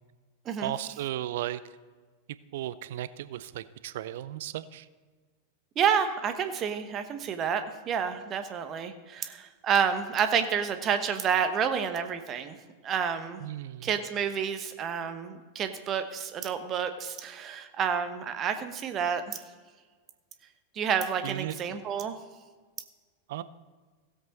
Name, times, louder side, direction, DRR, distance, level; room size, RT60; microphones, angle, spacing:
voice 1, 0.6-1.6 2.5-4.9 13.4-13.9 21.2-21.6 23.3-23.4, right 13 dB, 55° right, 16 dB, 0.5 m, -35 dB
voice 2, 5.8-12.6 12.8-13.4 13.8-19.4 20.7-22.2, right 7 dB, 30° right, 9 dB, 1.0 m, -29 dB
16.5 x 7.8 x 4.1 m, 1.5 s
figure-of-eight pair, 90°, 0 cm